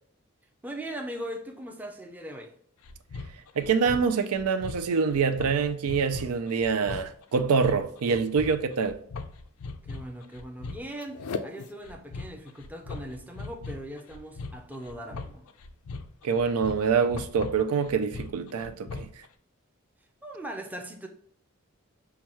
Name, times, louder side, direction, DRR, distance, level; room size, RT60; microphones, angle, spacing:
voice 1, 0.6-2.5 9.8-15.5 20.2-21.1, right 1 dB, 5° right, 0.5 m, -39 dB
sound 1, 2.8-19.3, left 4 dB, 85° left, 0.4 m, -40 dB
voice 2, 3.6-9.0 16.2-19.1, right 5 dB, 90° right, 0.5 m, -25 dB
5.7 x 2.3 x 3.0 m
head